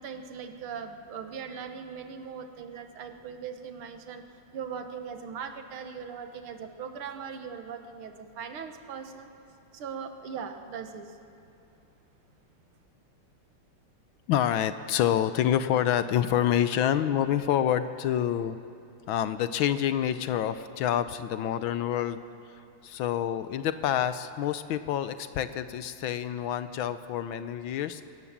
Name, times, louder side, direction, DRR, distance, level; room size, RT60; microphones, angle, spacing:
voice 1, 0.0-4.2 4.5-9.3 9.7-11.2, right 6 dB, 75° right, 7 dB, 2.1 m, -39 dB
voice 2, 14.3-18.6 19.1-22.2 22.8-28.0, left 10 dB, 75° left, 12 dB, 1.4 m, -27 dB
21.0 x 18.0 x 7.4 m, 2.6 s
omnidirectional pair, 2.4 m